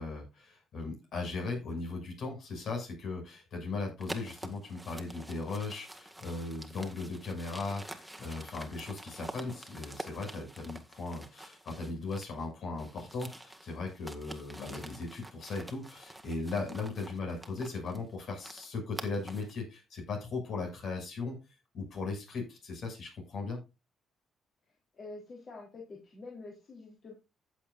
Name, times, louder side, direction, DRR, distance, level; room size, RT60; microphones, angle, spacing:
voice 1, 0.0-21.4 21.7-23.6, left 3 dB, 65° left, 2 dB, 6.7 m, -38 dB
sound 1, 4.0-12.5 12.8-19.6, right 1 dB, 5° right, 1.8 m, -47 dB
voice 2, 24.9-27.1, left 3 dB, 50° left, -2 dB, 3.6 m, -47 dB
14.5 x 7.8 x 2.5 m, 0.27 s
cardioid pair, 90°, 0 cm